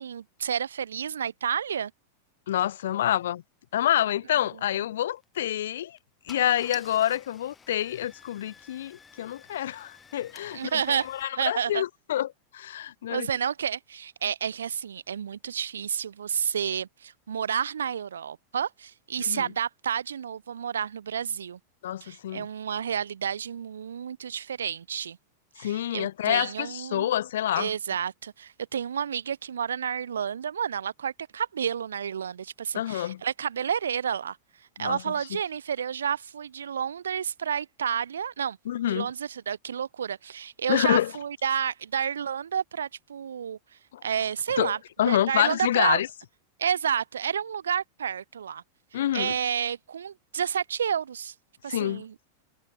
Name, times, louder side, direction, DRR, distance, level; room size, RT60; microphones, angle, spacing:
voice 1, 0.0-1.9 10.5-11.1 11.3-11.8 13.1-21.6 22.0-25.2 25.6-27.1 27.6-34.4 34.8-38.6 38.9-43.6 44.0-44.8 45.1-46.0 46.6-48.6 48.9-51.3 51.6-52.1, right 8 dB, 65° right, 0.4 m, -30 dB
voice 2, 2.5-3.4 3.7-6.0 6.3-12.3 12.5-13.3 19.2-19.4 21.8-22.5 25.6-27.7 32.7-33.2 34.8-35.0 38.7-39.1 40.7-41.1 43.9-44.0 44.6-44.7 45.0-46.1 48.9-49.4 51.7-52.0, left 12 dB, 60° left, 0.5 m, -27 dB
Car / Engine starting, 5.2-5.4 6.0-6.1 6.3-11.2, left 6 dB, 15° left, 1.8 m, -51 dB
figure-of-eight pair, 90°, 0 cm